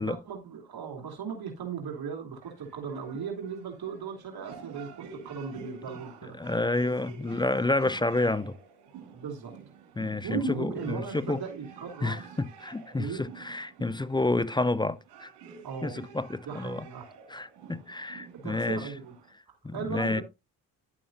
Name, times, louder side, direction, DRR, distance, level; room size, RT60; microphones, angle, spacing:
voice 1, 0.0-6.4 9.1-9.5 10.2-12.2 12.9-13.3 15.6-16.0 16.4-17.1 18.4-19.1 19.5-20.2, right 5 dB, 60° right, 2.9 m, -37 dB
sound 1, 2.4-19.3, right 6 dB, 75° right, 3.2 m, -49 dB
voice 2, 6.4-8.6 10.0-11.4 12.0-15.3 15.8-16.8 17.3-18.9 19.6-20.2, left 2 dB, 10° left, 0.5 m, -29 dB
10.5 x 8.6 x 2.6 m
supercardioid pair, 55°, 42 cm